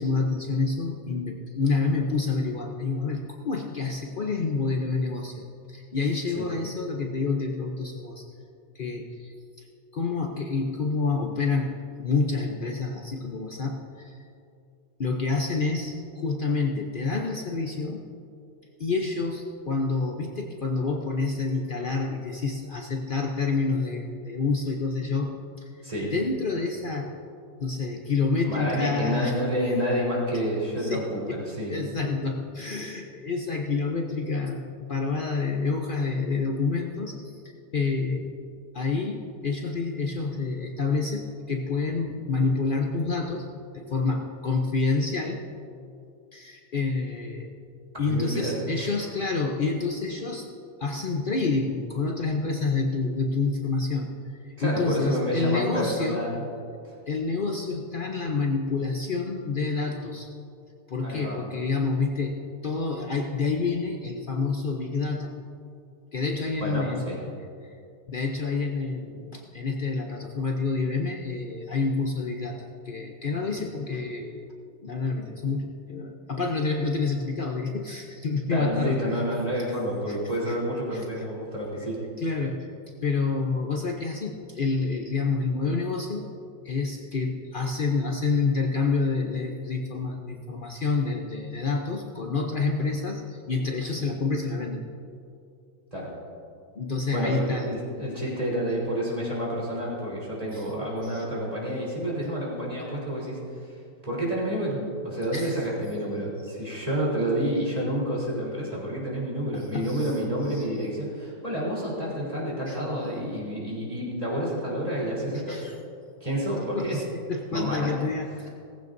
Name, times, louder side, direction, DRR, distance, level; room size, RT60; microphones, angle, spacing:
voice 1, 0.0-5.4 5.7-8.3 8.7-9.7 9.9-14.2 15.0-18.0 18.8-25.8 26.1-27.1 27.6-29.4 30.8-31.4 31.7-37.4 37.7-38.3 38.7-43.5 43.7-45.4 46.3-47.5 48.0-50.5 50.8-56.3 57.1-60.3 60.9-65.3 66.1-67.2 67.6-67.7 68.1-74.5 74.8-79.2 79.5-79.6 80.1-80.2 80.5-80.6 80.9-81.0 82.2-82.7 83.0-86.3 86.6-94.9 96.8-97.7 100.5-100.6 101.0-101.3 105.3-105.6 109.5-110.1 110.5-110.7 112.7-112.8 115.5-115.8 116.6-118.5, left 4 dB, 75° left, 1 dB, 0.4 m, -28 dB
voice 2, 25.8-26.1 28.4-31.8 48.1-48.9 54.6-56.4 61.0-61.4 66.6-67.2 78.5-82.0 95.9-96.1 97.1-103.4 104.0-115.6 116.2-117.0 117.5-117.9, equal, 20° right, -6 dB, 3.7 m, -29 dB
18.0 x 15.5 x 2.7 m, 2.4 s
omnidirectional pair, 2.1 m